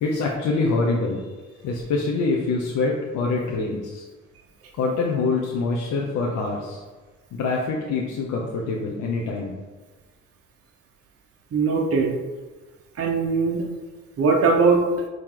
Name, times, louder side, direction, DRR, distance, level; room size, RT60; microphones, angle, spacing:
voice 1, 0.0-1.3 1.6-4.0 4.7-6.8 7.3-9.6, left 3 dB, 80° left, -2 dB, 0.9 m, -25 dB
voice 2, 11.5-12.2 13.0-13.6 14.2-14.8, right 4 dB, 50° right, 0 dB, 1.0 m, -20 dB
8.9 x 3.1 x 3.9 m, 1.3 s
cardioid pair, 90°, 30 cm